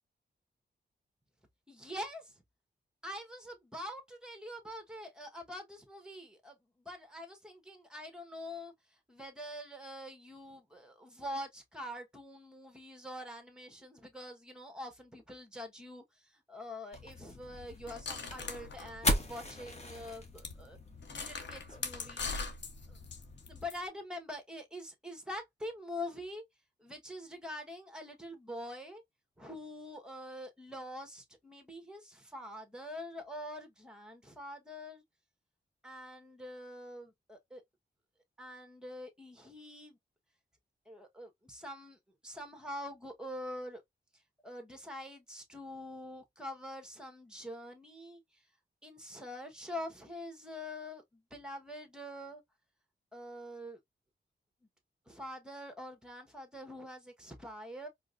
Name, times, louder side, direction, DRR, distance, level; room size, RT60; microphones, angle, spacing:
voice 1, 1.7-2.4 3.0-6.6 6.8-8.7 9.1-20.8 21.1-22.3 22.9-23.0 23.5-26.4 26.8-29.0 29.4-35.0 35.8-37.6 38.4-40.0 40.9-43.8 44.4-48.4 48.8-52.4 53.1-53.8 55.1-57.9, left 1 dB, 5° right, 1.2 m, -45 dB
sound 1, 16.9-23.7, left 1 dB, 35° left, 1.0 m, -39 dB
sound 2, 17.9-19.7 20.0-20.1 20.4-20.6 21.0-23.8, left 4 dB, 75° left, 0.8 m, -41 dB
4.5 x 2.1 x 2.5 m
cardioid pair, 85°, 19 cm